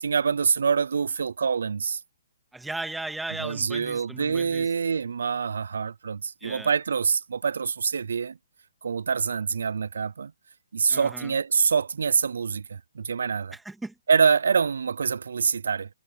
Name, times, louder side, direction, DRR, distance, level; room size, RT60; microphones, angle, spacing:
voice 1, 0.0-2.0 3.4-8.4 8.8-10.3 10.7-13.5 14.1-15.9, right 6 dB, 75° right, 0.3 m, -25 dB
voice 2, 2.5-4.7 6.4-6.7 10.9-11.3 13.5-14.0, right 2 dB, 5° right, 2.0 m, -36 dB
hypercardioid pair, 160°, 0 cm